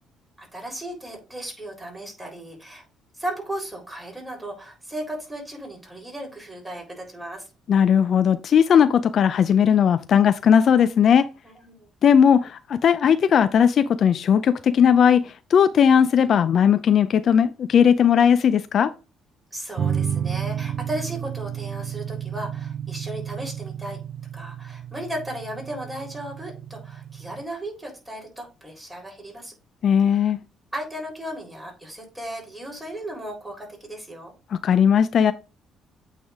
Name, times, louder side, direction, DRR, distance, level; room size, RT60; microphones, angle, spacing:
voice 1, 0.4-2.8 3.2-7.4 11.4-11.9 19.5-24.0 24.3-29.5 30.1-30.3 30.7-34.3, right 1 dB, 10° right, 3.6 m, -35 dB
voice 2, 7.7-11.3 12.0-18.9 29.8-30.4 34.5-35.3, left 8 dB, 55° left, 0.4 m, -18 dB
sound 1, 19.8-27.4, right 8 dB, 50° right, 0.4 m, -31 dB
8.6 x 3.4 x 3.5 m
cardioid pair, 105°, 0 cm